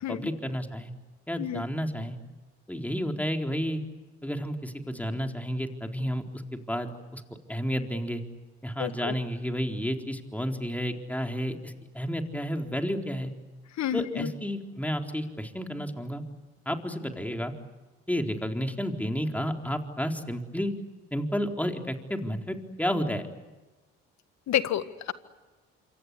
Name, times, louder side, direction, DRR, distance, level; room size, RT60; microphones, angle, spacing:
voice 1, 0.1-0.9 1.3-2.2 2.7-3.8 4.2-6.2 6.5-7.2 7.5-8.2 8.6-13.3 13.9-16.2 16.7-17.5 18.1-20.7 21.1-23.2, equal, 5° left, 4 dB, 4.1 m, -31 dB
voice 2, 8.8-9.1 13.8-14.3 24.5-25.1, left 11 dB, 65° left, 12 dB, 1.8 m, -29 dB
27.5 x 25.0 x 8.4 m, 1.2 s
supercardioid pair, 60°, 30 cm